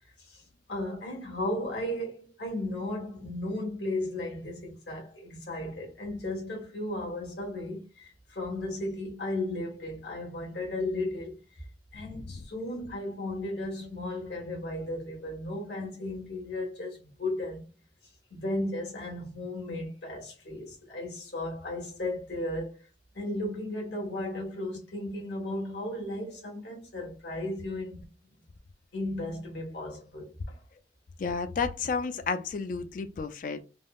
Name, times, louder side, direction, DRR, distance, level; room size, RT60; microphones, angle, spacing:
voice 1, 0.7-11.6 11.9-17.6 18.3-22.9 23.1-28.1 28.9-30.6, left 1 dB, 75° left, 1.4 m, -35 dB
voice 2, 31.2-33.6, left 5 dB, 45° left, 0.3 m, -31 dB
3.5 x 2.0 x 2.3 m
head